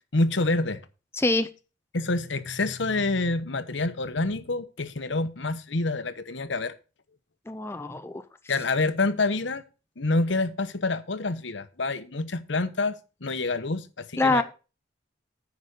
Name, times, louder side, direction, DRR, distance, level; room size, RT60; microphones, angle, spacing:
voice 1, 0.1-0.8 1.9-6.7 8.5-9.6 10.0-13.0 13.2-14.4, left 2 dB, 75° left, 1.0 m, -27 dB
voice 2, 1.1-1.5 7.5-8.2 14.2-14.4, left 2 dB, 15° left, 0.4 m, -24 dB
9.8 x 5.3 x 6.6 m
head